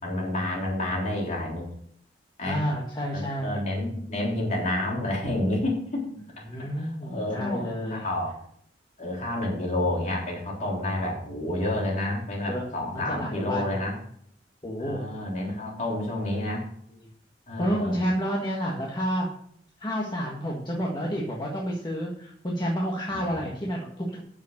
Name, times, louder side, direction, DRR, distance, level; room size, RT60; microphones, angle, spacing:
voice 1, 0.0-1.6 2.4-2.6 3.1-6.0 6.6-8.3 9.0-14.0 14.8-16.6 17.5-18.0 23.1-23.3, left 1 dB, 45° left, -2 dB, 3.7 m, -29 dB
voice 2, 2.4-3.6 6.4-8.0 12.5-13.8 14.6-15.0 17.6-19.3 19.8-24.2, equal, 25° left, -3 dB, 1.7 m, -30 dB
8.8 x 7.3 x 6.6 m, 0.65 s
head